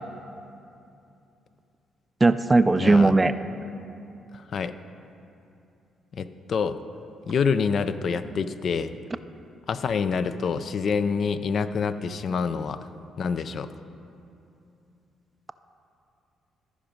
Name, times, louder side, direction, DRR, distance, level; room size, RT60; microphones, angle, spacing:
voice 1, 2.2-3.3, right 3 dB, 20° right, 12 dB, 0.3 m, -18 dB
voice 2, 2.8-3.1 4.3-4.7 6.1-6.8 7.3-8.9 9.7-12.9 13.2-13.7, left 5 dB, 55° left, 12 dB, 0.4 m, -27 dB
13.5 x 5.1 x 5.1 m, 2.7 s
cardioid pair, 90°, 0 cm